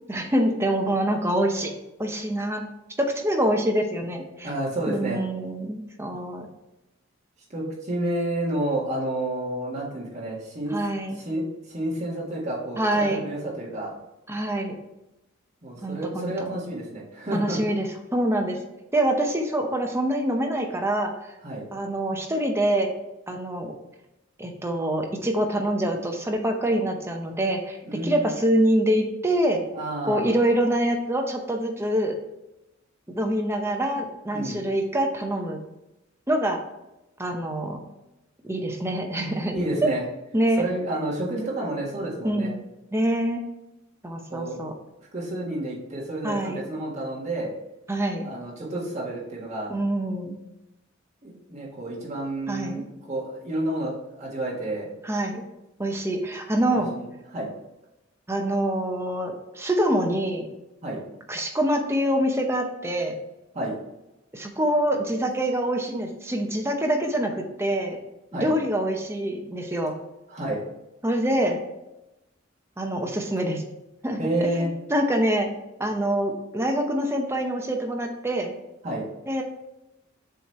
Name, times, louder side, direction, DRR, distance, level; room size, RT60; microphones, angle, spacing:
voice 1, 0.1-2.6 3.0-4.5 4.9-6.5 10.7-11.2 12.8-13.2 14.3-14.7 15.8-16.5 17.3-18.6 18.9-21.1 21.7-22.9 23.3-23.7 24.4-27.8 28.0-29.6 30.1-32.1 33.1-35.6 36.3-36.6 37.2-37.8 38.4-39.6 40.3-40.6 42.2-42.6 42.9-43.4 44.0-44.7 46.2-46.6 47.9-48.3 49.7-50.4 52.5-52.8 55.0-55.4 55.8-56.9 58.3-60.5 61.3-63.1 64.3-68.0 68.3-69.9 71.0-71.6 72.8-73.6 74.0-74.2 74.6-75.5 75.8-78.5 79.3-79.4, right 1 dB, 15° right, 3 dB, 0.7 m, -25 dB
voice 2, 4.4-5.2 7.5-10.8 11.2-13.9 15.6-17.6 21.4-21.7 27.8-28.3 29.7-30.4 34.3-34.6 39.5-40.0 40.6-42.5 44.3-44.6 45.0-47.5 48.2-49.7 51.2-54.9 56.7-57.1 57.3-57.5 60.8-61.0 63.5-63.8 68.3-68.5 70.3-70.6 74.2-74.7 78.8-79.0, right 1 dB, 35° right, -5 dB, 1.8 m, -30 dB
7.0 x 3.2 x 4.2 m, 0.94 s
head